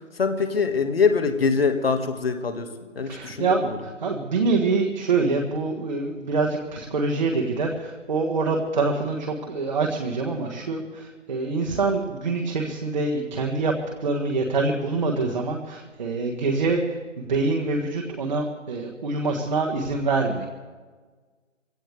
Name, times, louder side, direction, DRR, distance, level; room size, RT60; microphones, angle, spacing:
voice 1, 0.2-2.7 3.0-3.8, left 5 dB, 50° left, 6 dB, 1.9 m, -23 dB
voice 2, 3.1-13.7 14.0-16.8 17.2-20.5, right 3 dB, 35° right, 0 dB, 1.6 m, -25 dB
23.0 x 17.0 x 3.5 m, 1.4 s
figure-of-eight pair, 150°, 38 cm